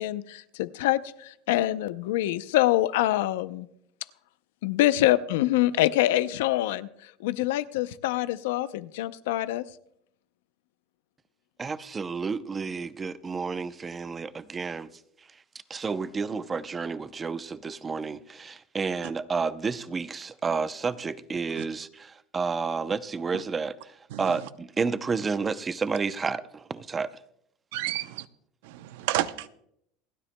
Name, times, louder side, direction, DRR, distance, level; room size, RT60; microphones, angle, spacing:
voice 1, 0.0-3.7 4.6-9.7, left 15 dB, 85° left, 0.5 m, -25 dB
voice 2, 11.6-14.9 15.7-23.7 24.2-27.1, right 5 dB, 20° right, 0.6 m, -30 dB
voice 3, 24.1-24.5 27.7-28.3 28.6-29.5, right 14 dB, 80° right, 0.6 m, -31 dB
28.0 x 9.9 x 2.2 m
supercardioid pair, 125°, 0 cm